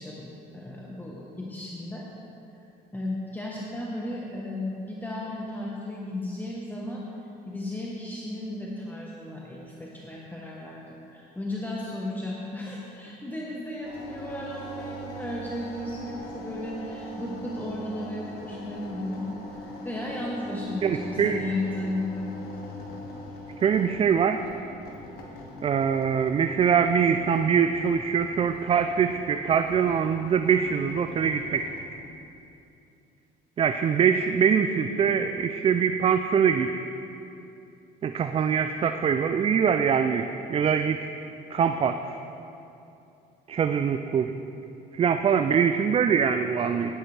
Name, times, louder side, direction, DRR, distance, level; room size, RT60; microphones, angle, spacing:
voice 1, 0.0-2.0 2.9-7.0 7.5-19.2 19.5-22.3, left 1 dB, 10° left, -4 dB, 1.1 m, -34 dB
sound 1, 13.8-31.8, equal, 70° left, 1.7 m, -41 dB
voice 2, 20.8-21.4 23.6-24.4 25.6-31.7 33.6-36.7 38.0-41.1 41.5-42.0 43.5-44.3 44.9-46.9, right 7 dB, 35° right, 8 dB, 0.4 m, -23 dB
11.5 x 10.5 x 3.3 m, 2.7 s
cardioid pair, 110°, 17 cm